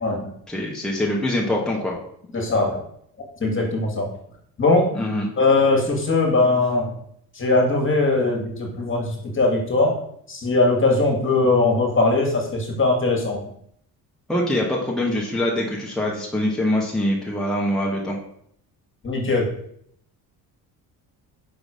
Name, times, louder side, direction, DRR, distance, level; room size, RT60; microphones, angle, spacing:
voice 1, 0.5-2.0 4.9-5.3 14.3-18.2, left 1 dB, ahead, -3 dB, 1.2 m, -24 dB
voice 2, 2.3-2.8 3.4-4.1 4.6-4.9 5.4-6.9 7.4-9.9 10.3-13.4 19.0-19.5, left 3 dB, 30° left, 1 dB, 1.8 m, -20 dB
5.4 x 3.8 x 4.9 m, 0.68 s
cardioid pair, 90°, 39 cm